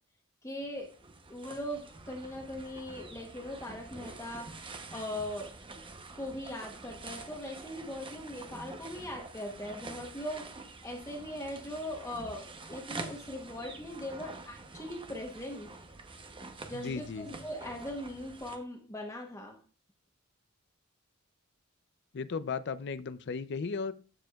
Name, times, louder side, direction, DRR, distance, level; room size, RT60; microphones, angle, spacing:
voice 1, 0.4-0.9 1.3-5.5 6.2-15.7 16.7-19.6, left 1 dB, 15° left, 1 dB, 1.0 m, -40 dB
sound 1, 0.6-18.6, right 3 dB, 25° right, 0.8 m, -47 dB
voice 2, 16.7-17.3 22.1-23.9, left 5 dB, 55° left, 14 dB, 0.5 m, -35 dB
13.5 x 4.8 x 2.3 m, 0.39 s
head